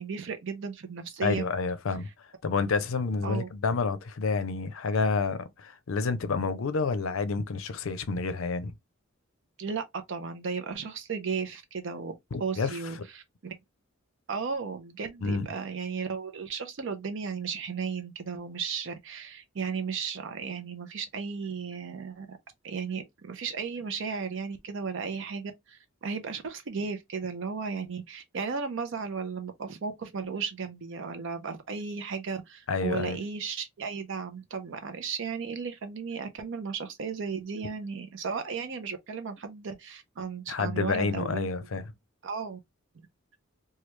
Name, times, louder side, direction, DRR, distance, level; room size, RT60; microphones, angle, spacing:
voice 1, 0.0-1.4 3.2-3.5 9.6-12.1 12.4-13.6 14.3-22.4 22.6-41.5 42.2-42.6, right 5 dB, 65° right, 0.5 m, -35 dB
voice 2, 1.2-2.1 2.4-8.7 12.3-12.8 15.2-15.5 32.7-33.2 40.5-41.8, left 4 dB, 70° left, 0.5 m, -29 dB
3.2 x 2.3 x 3.0 m
head